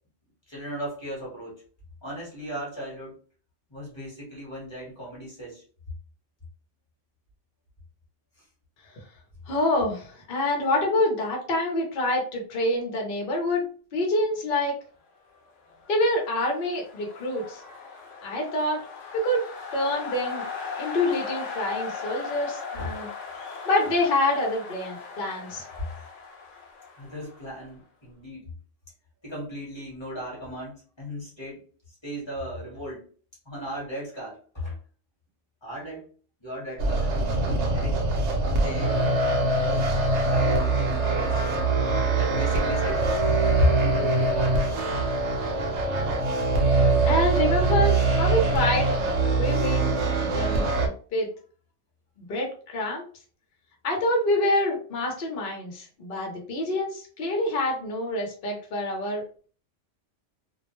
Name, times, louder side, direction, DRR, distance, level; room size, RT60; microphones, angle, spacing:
voice 1, 0.5-1.6 2.0-3.2 3.7-5.6 22.8-23.0 27.0-28.5 29.2-31.6 32.0-33.1 33.4-34.8 35.6-36.1 36.4-37.2 37.7-38.0 38.5-39.0 39.6-41.6 42.1-43.0 43.6-45.2, left 1 dB, 25° left, -5 dB, 1.2 m, -35 dB
voice 2, 9.5-14.8 15.9-17.6 18.2-18.9 19.1-20.4 20.8-23.1 23.7-25.6 46.6-49.0 49.3-50.7 51.1-51.3 52.2-53.1 53.8-59.2, left 1 dB, 50° left, 0 dB, 0.9 m, -26 dB
sound 1, 15.7-27.7, left 5 dB, 90° left, 0.9 m, -38 dB
sound 2, 36.8-50.9, right 3 dB, 70° right, 0.9 m, -23 dB
2.4 x 2.1 x 3.0 m, 0.41 s
omnidirectional pair, 1.2 m